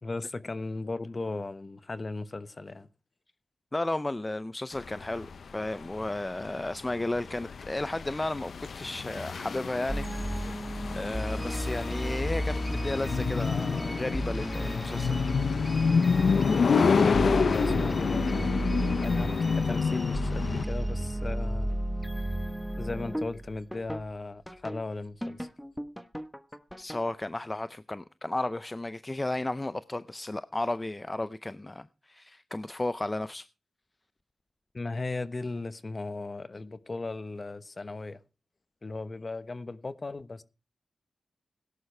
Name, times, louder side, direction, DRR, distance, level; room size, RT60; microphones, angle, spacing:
voice 1, 0.0-2.9 17.0-18.5 19.0-21.8 22.8-25.5 34.7-38.2 38.8-40.4, left 3 dB, 40° left, 1.0 m, -37 dB
voice 2, 3.7-10.3 10.9-15.2 26.8-33.5, left 2 dB, 20° left, 0.5 m, -33 dB
sound 1, 4.8-20.6, left 5 dB, 70° left, 0.7 m, -28 dB
Playground Runaround, 9.9-24.1 24.5-24.8 25.2-27.3, right 1 dB, ahead, 1.2 m, -33 dB
17.5 x 11.0 x 3.3 m
cardioid pair, 75°, 0 cm